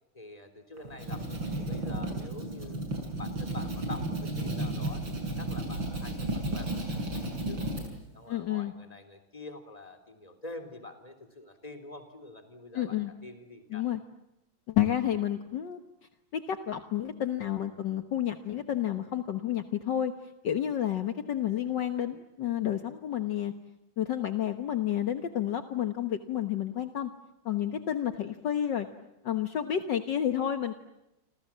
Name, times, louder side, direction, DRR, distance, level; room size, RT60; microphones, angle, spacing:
voice 1, 0.1-2.8 3.2-7.2 7.4-7.7 8.1-13.0 13.2-13.9, left 2 dB, 20° left, 8 dB, 3.6 m, -46 dB
sound 1, 0.8-7.8, right 1 dB, 70° right, 7.5 m, -33 dB
voice 2, 8.3-8.7 12.7-13.1 13.7-14.0 14.7-15.8 16.3-20.1 20.4-23.5 24.0-27.1 27.5-28.9 29.2-30.7, left 10 dB, 65° left, 8 dB, 1.8 m, -30 dB
29.5 x 26.5 x 7.4 m, 0.89 s
omnidirectional pair, 2.2 m